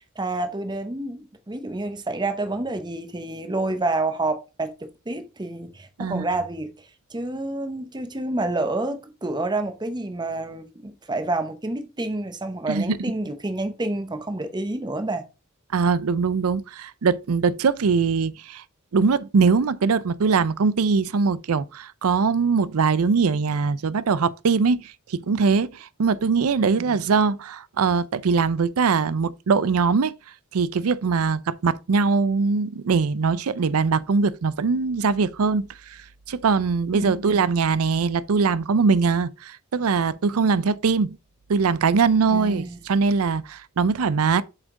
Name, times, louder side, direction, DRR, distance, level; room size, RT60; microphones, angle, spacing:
voice 1, 0.2-6.7 7.1-15.2 26.8-27.0 36.9-37.4 42.3-42.8, right 2 dB, 20° right, 0.8 m, -28 dB
voice 2, 15.7-18.6 18.9-30.1 30.5-36.0 36.3-41.2 41.5-44.4, right 5 dB, 80° right, 0.5 m, -22 dB
7.4 x 5.1 x 3.7 m
head